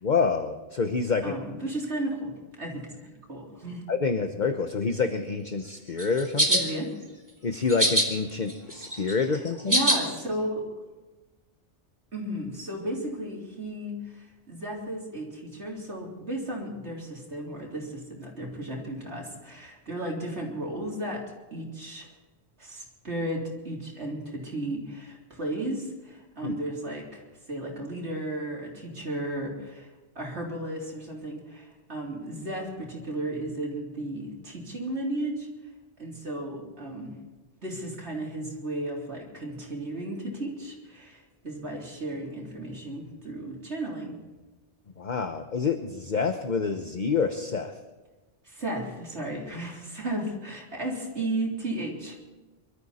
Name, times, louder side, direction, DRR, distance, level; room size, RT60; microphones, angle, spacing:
voice 1, 0.0-1.4 3.9-6.6 7.4-9.8 26.4-26.5 45.0-47.7, left 5 dB, 45° left, 7 dB, 1.0 m, -27 dB
voice 2, 1.2-3.8 6.5-6.9 9.6-10.6 12.1-21.2 21.5-22.1 22.6-29.9 30.2-35.5 36.0-37.2 37.6-44.2 48.4-52.2, right 1 dB, 70° right, -2 dB, 3.9 m, -34 dB
sound 1, 6.0-6.6 7.7-8.1 8.5-10.0, right 1 dB, 15° right, 2.6 m, -23 dB
25.0 x 13.0 x 4.2 m, 1.2 s
omnidirectional pair, 1.2 m